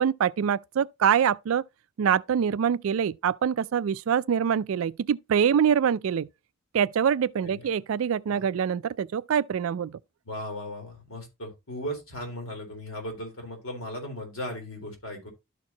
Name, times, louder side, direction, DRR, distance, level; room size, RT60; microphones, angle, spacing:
voice 1, 0.0-1.6 2.0-6.3 6.7-10.0, right 8 dB, 75° right, 0.3 m, -25 dB
voice 2, 10.2-15.3, equal, 80° left, 3.3 m, -37 dB
12.5 x 4.5 x 2.8 m
head